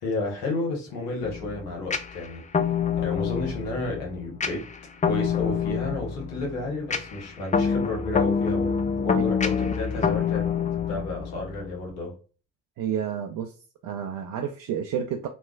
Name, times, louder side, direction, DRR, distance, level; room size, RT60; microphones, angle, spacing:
voice 1, 0.0-2.4 3.0-4.6 5.0-10.5 10.9-12.1, left 2 dB, 80° left, 1.0 m, -31 dB
sound 1, 1.2-11.8, left 6 dB, 20° left, 0.4 m, -27 dB
voice 2, 12.8-13.5 13.8-15.3, right 8 dB, 65° right, 0.5 m, -30 dB
3.2 x 2.1 x 2.3 m
hypercardioid pair, 45°, 37 cm